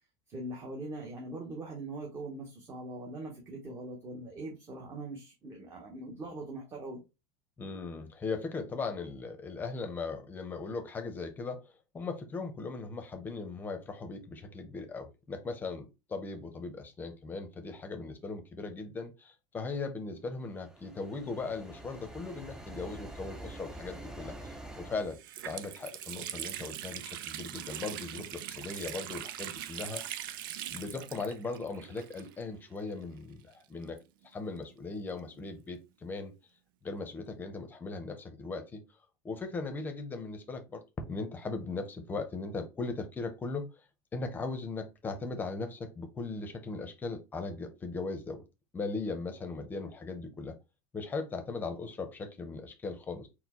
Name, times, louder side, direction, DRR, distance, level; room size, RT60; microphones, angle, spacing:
voice 1, 0.3-7.0, right 2 dB, 25° right, 1.0 m, -41 dB
voice 2, 7.6-25.2 25.4-30.0 30.7-34.0 34.2-36.3 36.8-38.8 39.2-43.8 44.1-48.4 48.7-50.5 50.9-53.3, left 3 dB, 15° left, 0.8 m, -38 dB
sound 1, 20.5-25.2, right 1 dB, 5° right, 0.5 m, -46 dB
Water tap faucet, 24.4-24.5 24.9-32.6 32.9-33.0 33.8-35.4, right 12 dB, 85° right, 0.5 m, -42 dB
4.3 x 2.2 x 4.2 m
supercardioid pair, 150°, 11 cm